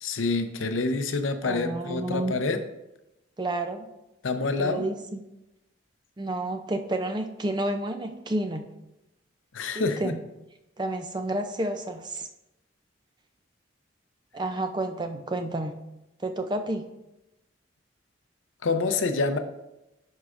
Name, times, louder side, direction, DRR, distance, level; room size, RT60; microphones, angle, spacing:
voice 1, 0.0-2.6 4.2-4.8 9.5-10.1 18.6-19.4, left 3 dB, 90° left, 8 dB, 0.6 m, -27 dB
voice 2, 1.4-2.4 3.4-3.9 4.6-5.2 6.2-8.7 9.7-10.2 10.8-12.3 14.3-15.8 16.2-16.9, right 1 dB, 20° right, 7 dB, 0.4 m, -30 dB
11.0 x 4.7 x 2.5 m, 0.93 s
head